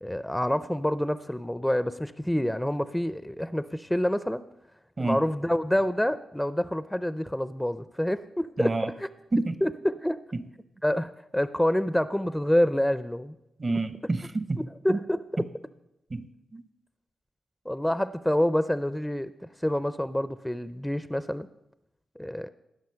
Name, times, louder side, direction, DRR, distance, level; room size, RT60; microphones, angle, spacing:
voice 1, 0.0-4.4 5.0-9.1 9.6-10.2 10.8-13.3 14.8-15.4 17.7-19.3 19.6-21.5 22.2-22.5, equal, 5° left, 14 dB, 0.5 m, -27 dB
voice 2, 8.6-8.9 9.3-9.6 10.3-10.5 13.6-15.0 15.4-15.5 16.1-16.6, right 2 dB, 40° right, 13 dB, 1.0 m, -29 dB
17.5 x 6.1 x 5.7 m, 0.87 s
supercardioid pair, 45°, 0 cm